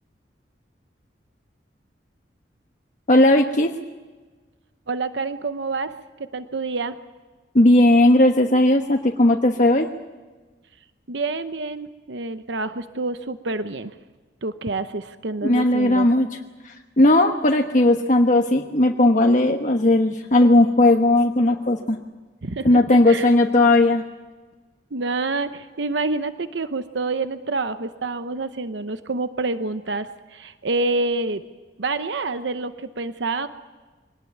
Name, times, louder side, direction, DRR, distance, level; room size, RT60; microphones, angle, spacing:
voice 1, 3.1-3.7 7.5-9.9 15.4-16.3 16.6-22.0 22.6-24.0, left 1 dB, 45° left, 3 dB, 1.2 m, -17 dB
voice 2, 4.9-5.9 6.2-7.0 11.1-13.9 14.4-16.1 22.4-22.7 23.1-23.3 24.9-31.5 31.8-33.5, right 3 dB, 75° right, 10 dB, 0.9 m, -27 dB
24.0 x 19.0 x 9.5 m, 1.3 s
head